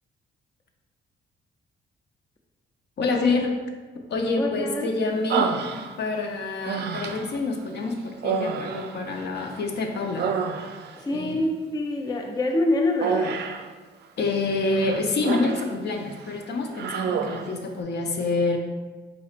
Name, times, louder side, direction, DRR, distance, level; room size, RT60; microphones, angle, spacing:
voice 1, 3.0-3.6 4.1-5.5 6.0-10.3 11.1-11.3 14.2-18.6, left 3 dB, 60° left, 3 dB, 0.6 m, -27 dB
voice 2, 4.4-4.9 11.0-13.4, left 2 dB, 20° left, 3 dB, 0.4 m, -26 dB
Human voice, 5.3-6.2 6.6-7.4 8.2-9.6 9.9-11.0 13.0-13.7 14.7-15.7 16.1-16.3 16.7-17.5, right 6 dB, 55° right, 0.4 m, -29 dB
4.1 x 4.1 x 2.5 m, 1.3 s
cardioid pair, 90°, 20 cm